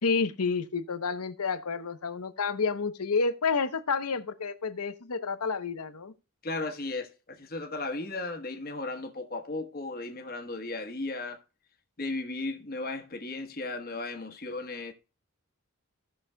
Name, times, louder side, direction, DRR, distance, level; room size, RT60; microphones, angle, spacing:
voice 1, 0.0-6.1, left 4 dB, 90° left, 0.9 m, -29 dB
voice 2, 6.4-11.4 12.0-14.9, left 2 dB, 45° left, 1.2 m, -35 dB
17.0 x 6.1 x 2.3 m
head